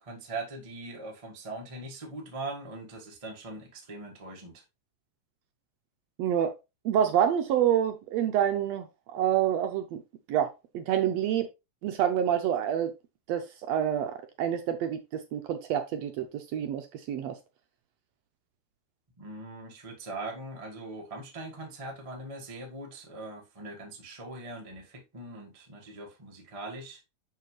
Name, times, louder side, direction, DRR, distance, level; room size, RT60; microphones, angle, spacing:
voice 1, 0.0-4.6 19.2-27.0, right 2 dB, 35° right, 0.5 m, -41 dB
voice 2, 6.2-6.5 6.8-8.9 9.1-10.0 10.3-11.5 11.8-12.9 13.3-17.3, right 9 dB, 75° right, 1.6 m, -27 dB
6.5 x 5.9 x 3.1 m
omnidirectional pair, 3.5 m